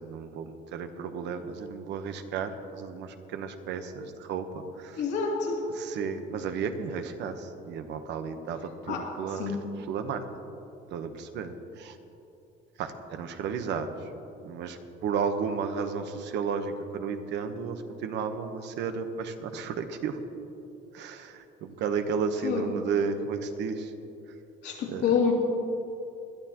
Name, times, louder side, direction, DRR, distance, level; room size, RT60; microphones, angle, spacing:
voice 1, 0.0-4.5 4.8-5.0 5.8-9.5 9.9-10.2 10.9-12.0 12.8-13.9 14.4-20.2 20.9-23.9 24.9-25.0, right 6 dB, 70° right, 8 dB, 1.0 m, -33 dB
voice 2, 4.9-5.7 8.9-9.6 22.4-22.8 24.6-25.3, left 6 dB, 70° left, -1 dB, 2.7 m, -28 dB
20.5 x 11.5 x 3.0 m, 2.9 s
cardioid pair, 120°, 19 cm